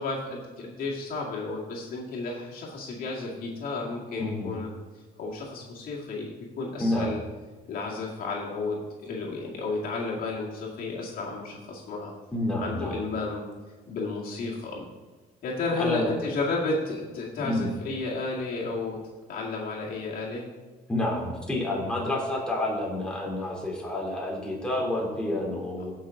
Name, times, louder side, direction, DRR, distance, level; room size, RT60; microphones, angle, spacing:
voice 1, 0.0-4.7 5.2-6.3 6.6-7.2 7.7-12.1 12.6-13.4 13.9-14.9 15.4-19.0 19.3-20.5, left 3 dB, 60° left, -3 dB, 2.1 m, -32 dB
voice 2, 4.2-4.5 6.8-7.1 12.3-13.0 15.7-16.1 17.4-17.7 20.9-25.9, left 1 dB, 5° left, -3 dB, 3.1 m, -29 dB
15.5 x 5.8 x 3.8 m, 1.3 s
cardioid pair, 110°, 17 cm